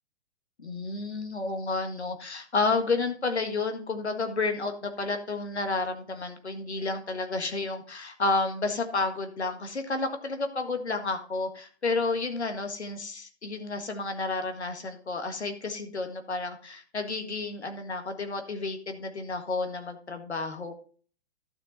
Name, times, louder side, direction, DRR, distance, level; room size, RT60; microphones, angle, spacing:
voice 1, 0.6-20.7, left 3 dB, 75° left, 6 dB, 1.8 m, -31 dB
11.5 x 7.0 x 4.1 m, 0.43 s
figure-of-eight pair, 120°, 34 cm